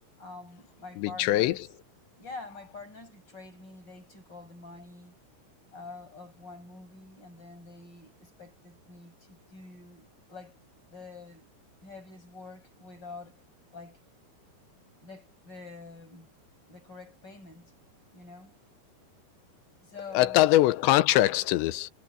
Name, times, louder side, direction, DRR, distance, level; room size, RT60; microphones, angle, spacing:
voice 1, 0.2-1.7 2.2-5.1 5.7-10.6 10.9-11.5 11.8-13.4 13.7-14.0 15.0-16.3 16.7-17.7 18.1-18.6 19.8-20.6, left 3 dB, 25° left, 8.1 m, -46 dB
voice 2, 1.0-1.5 20.2-21.9, left 15 dB, 90° left, 3.1 m, -22 dB
omnidirectional pair, 5.1 m